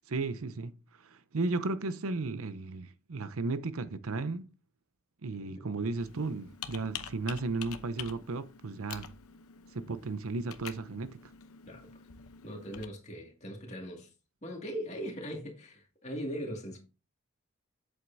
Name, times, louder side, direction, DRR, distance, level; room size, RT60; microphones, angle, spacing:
voice 1, 0.1-0.7 1.0-4.5 5.2-9.1 9.7-11.3, right 3 dB, 80° right, 0.7 m, -34 dB
Computer keyboard, 6.0-12.9, left 8 dB, 90° left, 0.8 m, -47 dB
voice 2, 12.4-14.1 14.4-16.8, equal, 30° left, 2.1 m, -40 dB
7.9 x 7.7 x 2.7 m
head